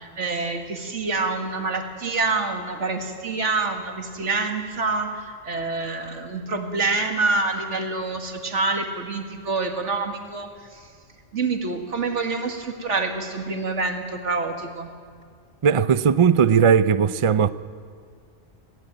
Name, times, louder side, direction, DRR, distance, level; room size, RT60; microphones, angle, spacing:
voice 1, 0.0-10.9 11.3-14.9, right 3 dB, 75° right, 2.2 m, -27 dB
voice 2, 15.6-17.5, right 7 dB, 45° right, 0.4 m, -18 dB
21.0 x 16.5 x 9.0 m
omnidirectional pair, 1.2 m